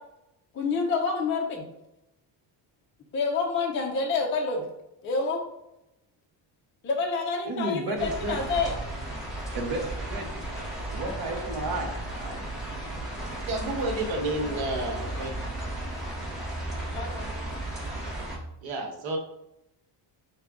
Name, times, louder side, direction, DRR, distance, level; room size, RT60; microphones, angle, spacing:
voice 1, 0.5-1.6 3.1-4.6 5.0-5.4 6.8-8.7 11.0-11.1 16.9-17.2, left 4 dB, 30° left, 1 dB, 0.4 m, -28 dB
voice 2, 7.4-8.4 9.5-10.3 10.9-12.4, right 2 dB, 50° right, 2 dB, 0.8 m, -32 dB
sound 1, 8.0-18.4, right 1 dB, ahead, 0.9 m, -35 dB
voice 3, 13.4-15.3 18.6-19.2, right 2 dB, 75° right, 1 dB, 1.1 m, -30 dB
4.9 x 2.3 x 3.5 m, 0.86 s
cardioid pair, 175°, 45 cm